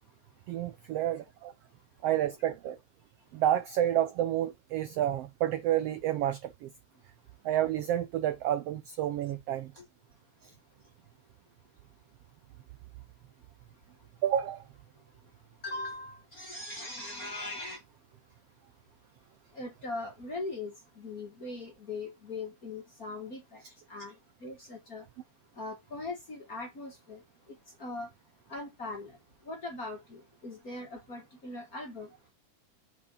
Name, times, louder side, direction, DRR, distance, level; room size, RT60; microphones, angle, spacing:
voice 1, 0.5-1.5 2.0-2.8 3.3-6.7 7.4-9.7 10.4-10.5 14.2-14.6, right 11 dB, 80° right, 1.4 m, -29 dB
voice 2, 15.6-17.8 19.5-23.6 23.9-25.1 25.5-27.2 27.5-28.1 28.5-29.2 29.4-32.1, left 2 dB, 35° left, 1.5 m, -40 dB
7.2 x 4.3 x 5.4 m
omnidirectional pair, 3.6 m